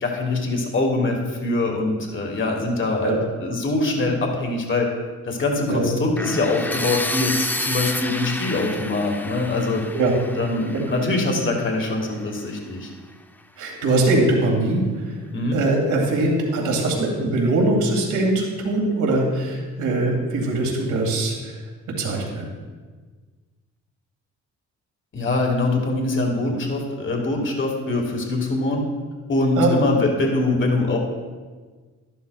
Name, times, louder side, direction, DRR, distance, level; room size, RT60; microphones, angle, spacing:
voice 1, 0.0-4.9 5.2-9.8 10.4-12.9 15.3-15.6 25.1-28.9 29.3-31.0, left 2 dB, 40° left, 1 dB, 1.9 m, -23 dB
sound 1, 6.2-12.1, left 1 dB, 5° left, 0.4 m, -30 dB
voice 2, 13.6-14.8 15.5-21.6 22.0-22.5 29.6-29.8, right 2 dB, 75° right, -1 dB, 2.2 m, -21 dB
11.5 x 11.0 x 2.3 m, 1.4 s
cardioid pair, 90°, 30 cm